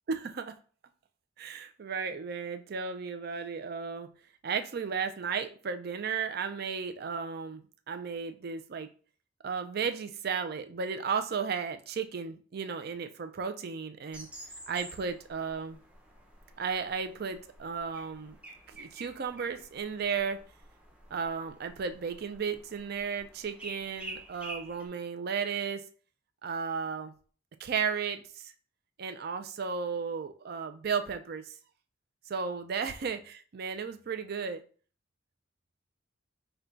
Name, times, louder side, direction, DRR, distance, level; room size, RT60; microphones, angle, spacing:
voice 1, 0.1-0.6 1.4-4.1 4.4-7.6 7.9-8.9 9.4-14.3 14.7-15.8 16.6-18.4 18.8-20.4 21.1-25.8 26.4-27.1 27.6-28.5 29.0-31.6 32.3-34.6, right 6 dB, 55° right, 9 dB, 0.4 m, -34 dB
sound 1, 14.1-24.9, right 2 dB, 5° right, 0.6 m, -49 dB
3.8 x 2.2 x 4.4 m, 0.41 s
head